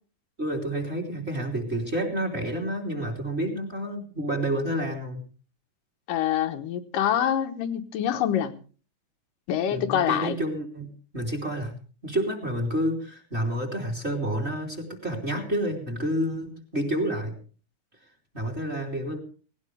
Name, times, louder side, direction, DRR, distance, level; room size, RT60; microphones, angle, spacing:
voice 1, 0.4-5.2 9.7-11.8 12.0-17.3 18.3-19.2, right 1 dB, 20° right, 4 dB, 3.2 m, -29 dB
voice 2, 6.1-8.6 9.5-10.4, left 10 dB, 80° left, 6 dB, 2.7 m, -25 dB
19.0 x 17.5 x 3.4 m, 0.37 s
omnidirectional pair, 3.8 m